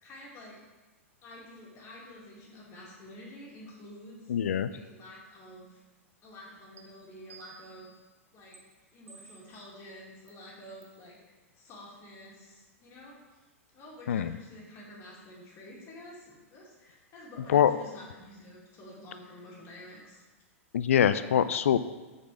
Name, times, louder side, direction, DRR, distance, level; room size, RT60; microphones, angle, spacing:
voice 1, 0.0-0.6 1.2-4.3 4.7-5.8 6.2-7.9 8.3-8.6 8.9-13.5 13.7-20.2, left 1 dB, 35° left, -4 dB, 2.1 m, -49 dB
voice 2, 4.3-4.7 14.1-14.4 17.5-17.7 20.7-21.8, left 9 dB, 70° left, 13 dB, 0.3 m, -24 dB
sound 1, 6.8-6.9 7.3-7.9 8.5-8.6 9.1-9.6 10.3-10.4 10.8-11.0, right 7 dB, 75° right, 1.0 m, -53 dB
6.1 x 4.1 x 4.7 m, 1.2 s
figure-of-eight pair, 100°, 8 cm